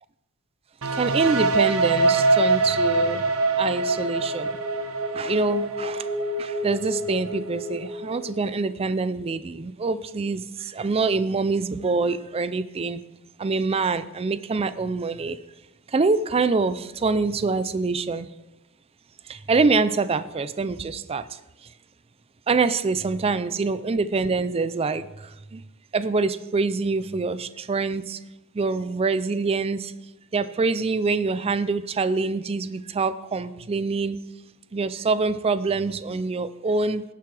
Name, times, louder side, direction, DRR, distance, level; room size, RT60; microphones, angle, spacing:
sound 1, 0.8-8.5, right 2 dB, 80° right, 1.0 m, -24 dB
voice 1, 0.9-3.2 3.6-4.6 5.1-6.1 6.4-13.0 13.4-15.4 15.9-18.3 19.3-21.4 22.5-25.6 25.9-28.2 28.5-29.9 30.3-34.2 34.7-37.0, right 4 dB, 30° right, 0.4 m, -25 dB
18.5 x 6.9 x 3.3 m
head